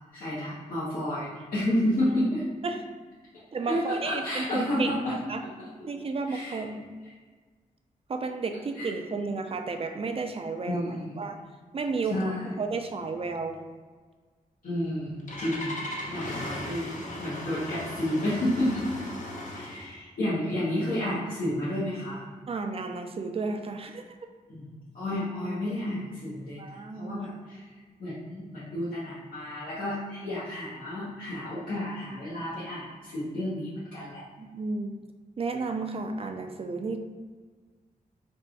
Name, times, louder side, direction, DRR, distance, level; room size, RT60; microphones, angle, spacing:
voice 1, 0.1-2.4 3.6-5.1 5.4-5.7 6.3-6.6 8.8-8.9 10.6-11.2 12.1-12.5 14.6-15.8 16.1-18.9 19.5-22.2 24.5-27.6 28.0-34.2, left 1 dB, 80° left, -12 dB, 1.2 m, -31 dB
voice 2, 3.5-4.9 5.3-5.4 5.9-6.9 8.1-11.4 11.7-13.6 22.5-24.2 26.6-27.2 34.4-35.0 35.4-37.0, right 4 dB, 40° right, 5 dB, 0.4 m, -32 dB
Engine starting, 14.8-19.9, left 1 dB, 60° left, 0.7 m, -37 dB
3.4 x 2.5 x 4.5 m, 1.5 s
wide cardioid pair, 120°, 15 cm